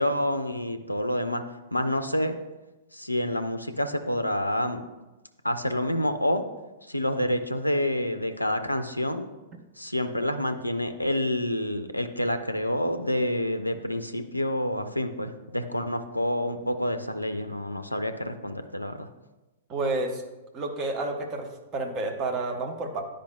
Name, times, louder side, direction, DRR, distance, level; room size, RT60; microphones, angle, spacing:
voice 1, 0.0-1.4 1.7-2.4 2.9-4.8 5.4-6.4 6.9-9.3 9.8-19.1, left 1 dB, 85° left, 8 dB, 0.4 m, -28 dB
voice 2, 19.7-20.2 20.5-23.0, right 2 dB, 30° right, 3 dB, 1.0 m, -30 dB
10.5 x 5.0 x 2.2 m, 1.1 s
figure-of-eight pair, 105°, 0 cm